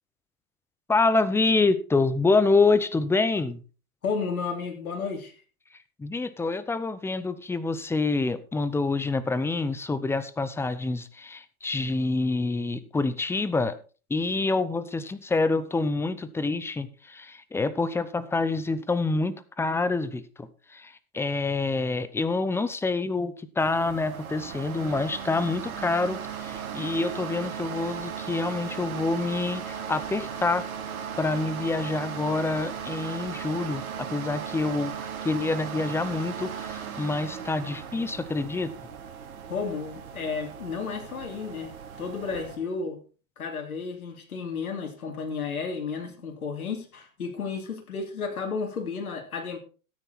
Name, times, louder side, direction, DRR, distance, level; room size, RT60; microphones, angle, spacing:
voice 1, 0.9-3.6 6.0-13.8 14.1-30.6 31.2-38.7, left 3 dB, 5° left, 0.7 m, -27 dB
voice 2, 4.0-5.4 39.5-43.0 43.4-49.6, left 5 dB, 85° left, 3.0 m, -32 dB
sound 1, 23.6-42.6, right 7 dB, 75° right, 3.5 m, -37 dB
13.5 x 9.1 x 4.1 m
hypercardioid pair, 120°, 42 cm